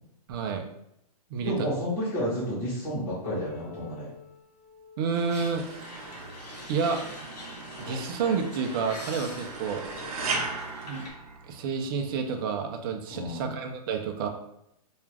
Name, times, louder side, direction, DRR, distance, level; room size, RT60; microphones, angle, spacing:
voice 1, 0.3-0.6 1.3-1.7 5.0-5.6 6.7-7.0 7.8-9.8 10.8-11.0 11.5-14.3, right 5 dB, 35° right, 4 dB, 0.4 m, -29 dB
voice 2, 1.4-4.1 13.1-13.6, equal, 10° left, -11 dB, 0.9 m, -31 dB
Piano, 3.2-8.6 9.4-9.5 10.0-10.1 10.9-11.0 12.0-12.1, left 6 dB, 35° left, 0.5 m, -47 dB
sound 1, 5.1-11.1, left 2 dB, 85° left, 0.8 m, -44 dB
sound 2, 5.6-11.9, right 3 dB, 65° right, 0.7 m, -37 dB
2.3 x 2.3 x 3.3 m, 0.77 s
hypercardioid pair, 150°, 20 cm